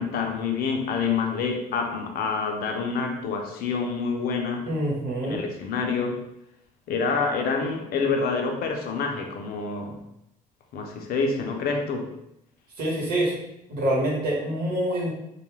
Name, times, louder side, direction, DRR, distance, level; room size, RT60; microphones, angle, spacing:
voice 1, 0.0-4.7 5.2-6.2 6.9-10.0 10.7-12.1, left 4 dB, 65° left, 2 dB, 0.5 m, -27 dB
voice 2, 4.7-5.4 12.8-13.3 13.7-15.1, right 1 dB, 65° right, -4 dB, 1.1 m, -26 dB
2.3 x 2.2 x 3.1 m, 0.81 s
cardioid pair, 110°, 17 cm